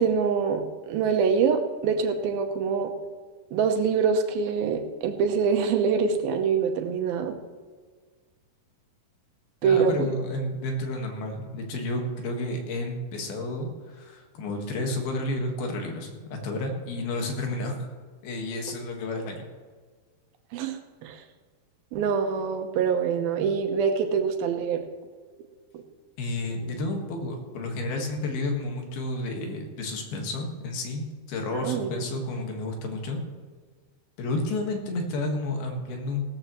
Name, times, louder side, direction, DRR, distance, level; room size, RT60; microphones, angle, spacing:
voice 1, 0.0-2.9 3.5-7.3 9.6-9.9 20.5-21.2 21.9-24.8 31.5-31.9, right 6 dB, 75° right, 5 dB, 2.6 m, -25 dB
voice 2, 9.6-17.9 18.2-19.5 26.2-33.2 34.2-36.4, left 2 dB, 75° left, 2 dB, 3.5 m, -31 dB
17.0 x 13.5 x 3.1 m, 1.5 s
omnidirectional pair, 4.5 m